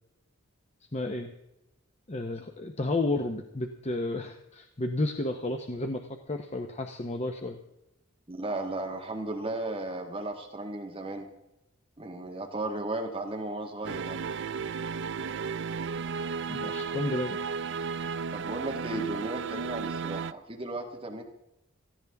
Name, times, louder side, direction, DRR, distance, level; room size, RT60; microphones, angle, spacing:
voice 1, 0.9-1.3 2.1-7.6 16.5-17.4, left 2 dB, 30° left, 5 dB, 1.0 m, -32 dB
voice 2, 8.3-11.3 12.0-14.2 18.3-21.2, right 2 dB, 25° right, 2 dB, 1.7 m, -35 dB
sound 1, 13.8-20.3, right 5 dB, 60° right, 0.5 m, -34 dB
17.5 x 15.0 x 3.6 m, 0.88 s
head